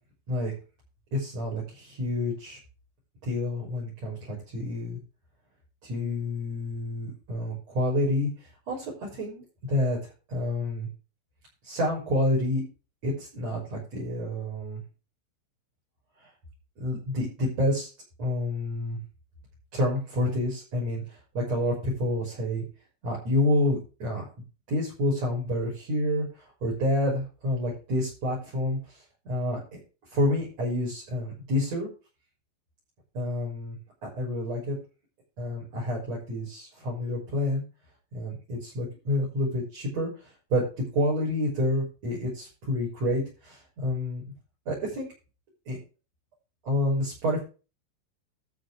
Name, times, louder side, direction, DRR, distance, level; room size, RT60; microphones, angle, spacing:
voice 1, 1.1-2.6 3.2-5.0 5.8-10.0 10.3-10.9 11.6-12.6 13.0-14.8 16.2-16.3 16.8-17.9 18.2-19.0 19.7-22.6 23.0-24.3 24.7-29.8 30.1-31.9 33.1-33.8 34.0-34.8 35.4-37.6 38.1-44.2 44.7-45.1 45.7-45.8 46.6-47.4, left 1 dB, 35° right, -4 dB, 7.4 m, -29 dB
13.0 x 9.9 x 3.7 m, 0.33 s
omnidirectional pair, 5.6 m